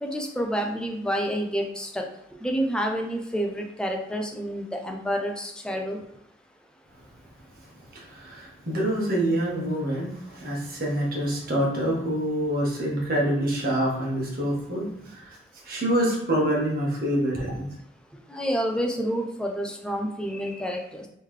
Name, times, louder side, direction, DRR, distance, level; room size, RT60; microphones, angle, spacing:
voice 1, 0.0-2.1 2.4-6.0 18.3-21.1, equal, 5° left, 2 dB, 0.4 m, -28 dB
voice 2, 7.9-15.4 15.6-17.7, right 1 dB, 50° right, -3 dB, 1.2 m, -26 dB
3.7 x 3.2 x 3.2 m, 0.77 s
head